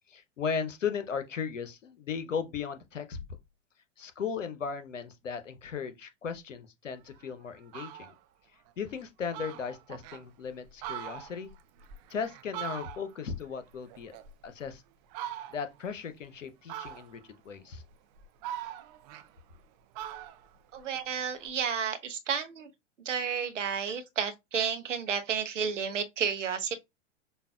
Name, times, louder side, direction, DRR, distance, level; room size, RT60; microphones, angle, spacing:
voice 1, 0.1-3.2 4.0-8.1 8.8-11.5 12.1-14.1 14.4-14.8 15.5-17.8, left 6 dB, 85° left, 0.7 m, -36 dB
Fowl, 7.1-7.2 7.6-8.2 8.7-8.8 9.0-9.1 9.3-10.2 10.7-13.3 13.6-14.7 15.1-15.8 16.7-17.3 17.9-19.6 19.9-21.5, right 11 dB, 35° right, 0.4 m, -42 dB
voice 2, 20.7-22.7 23.0-26.8, right 7 dB, 75° right, 0.8 m, -31 dB
5.3 x 2.2 x 2.3 m
figure-of-eight pair, 90°, 37 cm